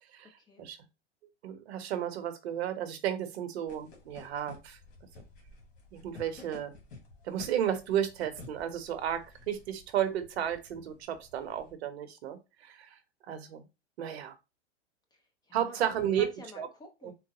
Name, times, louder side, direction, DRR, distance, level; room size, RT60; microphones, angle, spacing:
voice 1, 1.4-4.8 5.9-6.7 7.2-12.9 13.3-13.6 14.0-14.3 15.5-16.3 16.6-16.7 17.0-17.1, right 10 dB, 65° right, 9 dB, 0.8 m, -33 dB
sound 1, 3.7-11.7, left 3 dB, 65° left, 1.5 m, -53 dB
voice 2, 15.1-17.1, left 1 dB, 10° left, 2 dB, 0.5 m, -51 dB
3.9 x 2.1 x 2.9 m, 0.26 s
hypercardioid pair, 110°, 35 cm